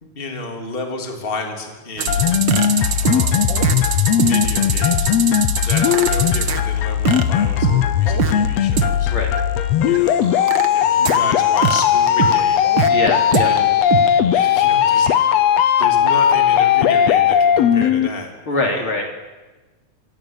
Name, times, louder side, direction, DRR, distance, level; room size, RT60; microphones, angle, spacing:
voice 1, 0.0-2.3 3.0-3.5 4.2-5.1 5.5-9.1 9.8-12.7 13.4-13.7 14.2-18.9, left 2 dB, 20° left, 3 dB, 3.3 m, -32 dB
sound 1, 2.0-6.6 7.0-8.3 8.8-8.9 9.4-9.5 9.9-11.2 11.6-12.9 13.3-13.4 13.9-14.0, right 7 dB, 45° right, 1.9 m, -22 dB
sound 2, 2.1-18.1, left 9 dB, 65° left, 2.1 m, -17 dB
voice 2, 12.9-13.5 18.5-19.0, left 2 dB, 45° left, 2 dB, 4.0 m, -22 dB
27.0 x 22.0 x 9.0 m, 1.2 s
omnidirectional pair, 3.3 m